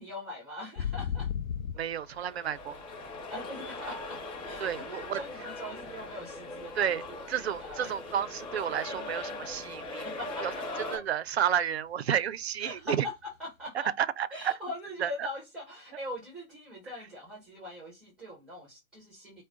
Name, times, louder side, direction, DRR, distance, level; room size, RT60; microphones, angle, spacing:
voice 1, 0.0-1.3 3.3-8.0 10.0-10.7 10.9-11.1 12.6-13.9 14.3-19.4, left 1 dB, ahead, 0.7 m, -42 dB
sound 1, 0.8-4.1 4.4-6.7 7.0-7.3 7.6-9.5 9.9-10.0 10.3-10.7 11.0-11.1 13.3-13.4, left 8 dB, 70° left, 0.6 m, -37 dB
voice 2, 1.8-2.8 4.6-5.2 6.8-7.0 7.3-10.1 10.4-10.5 10.9-13.1 14.0-14.5 15.0-15.3, right 9 dB, 50° right, 0.5 m, -31 dB
sound 2, 2.0-11.0, left 2 dB, 35° left, 3.1 m, -40 dB
4.7 x 2.2 x 3.7 m
figure-of-eight pair, 125°, 42 cm